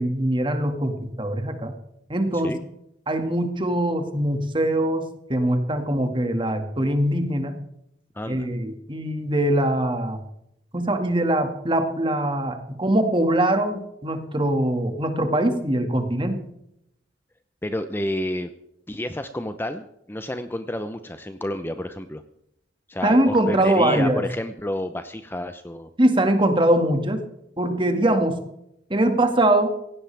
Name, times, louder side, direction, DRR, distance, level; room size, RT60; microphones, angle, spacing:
voice 1, 0.0-1.7 2.1-2.5 3.1-7.6 8.3-10.2 10.7-16.4 23.0-24.2 26.0-27.2 27.6-28.4 28.9-29.7, right 1 dB, 25° right, 6 dB, 2.0 m, -22 dB
voice 2, 8.1-8.5 17.6-18.5 18.9-22.2 22.9-25.9, left 1 dB, 10° left, 9 dB, 0.7 m, -30 dB
17.5 x 16.5 x 3.4 m, 0.80 s
head